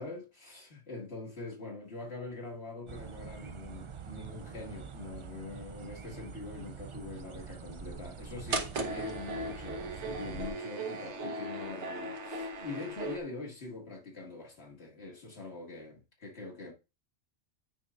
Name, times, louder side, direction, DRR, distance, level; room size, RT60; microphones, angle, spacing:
voice 1, 0.0-16.7, left 3 dB, 65° left, 2.0 m, -43 dB
sound 1, 2.9-10.5, right 6 dB, 50° right, 0.3 m, -45 dB
sound 2, 8.5-13.2, right 2 dB, 80° right, 1.3 m, -37 dB
9.2 x 5.4 x 2.4 m
omnidirectional pair, 1.2 m